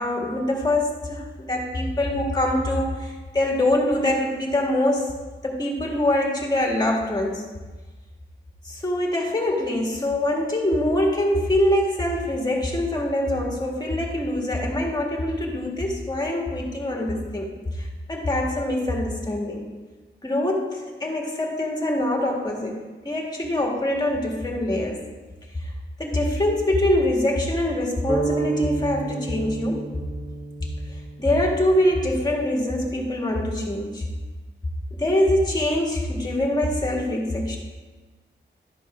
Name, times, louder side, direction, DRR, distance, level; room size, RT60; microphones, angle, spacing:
voice 1, 0.0-5.1 5.4-7.5 8.6-19.7 20.2-25.0 26.0-29.9 31.2-34.0 34.9-37.6, left 1 dB, 20° left, -1 dB, 1.8 m, -24 dB
sound 1, 28.1-32.0, right 3 dB, 35° right, 1.2 m, -31 dB
12.0 x 5.3 x 5.0 m, 1.3 s
wide cardioid pair, 140°, 19 cm